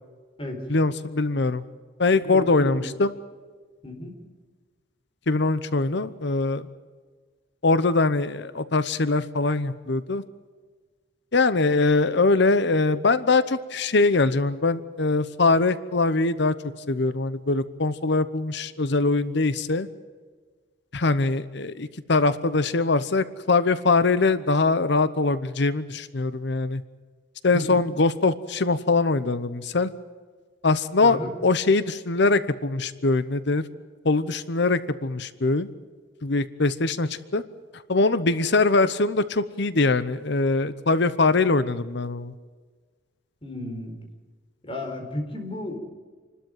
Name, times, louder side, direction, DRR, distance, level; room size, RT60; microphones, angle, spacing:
voice 1, 0.7-1.6 2.0-3.1 5.3-6.6 7.6-10.2 11.3-16.5 16.9-19.9 20.9-26.8 27.4-29.9 30.6-33.6 34.0-35.7 36.2-37.4 37.9-42.3, left 3 dB, 65° left, 14 dB, 0.9 m, -22 dB
voice 2, 2.2-2.9 3.8-4.2 27.5-27.6 31.0-31.3 43.4-44.0 44.6-45.8, left 1 dB, 30° left, 3 dB, 4.4 m, -32 dB
27.5 x 13.0 x 9.2 m, 1.5 s
head